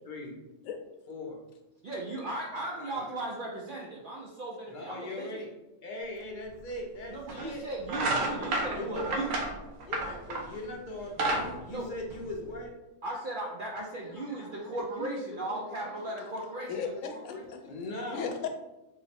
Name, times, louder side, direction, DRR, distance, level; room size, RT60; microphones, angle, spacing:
voice 1, 1.1-1.4 2.6-3.0 4.7-5.5 5.8-7.6 8.8-9.3 9.9-12.8 14.0-15.2 15.5-15.9 16.3-16.6 17.1-18.4, left 1 dB, 50° left, 0 dB, 0.6 m, -40 dB
voice 2, 1.8-5.4 7.1-9.4 11.7-11.9 13.0-16.7, right 2 dB, 65° right, -2 dB, 0.5 m, -37 dB
sound 1, 6.5-6.6 7.3-7.5 7.8-10.6 11.0-12.6, right 2 dB, 90° right, 1.1 m, -31 dB
voice 3, 16.7-17.6 18.1-18.5, left 6 dB, 90° left, 5 dB, 1.0 m, -36 dB
3.8 x 2.1 x 4.2 m, 0.99 s
omnidirectional pair, 1.3 m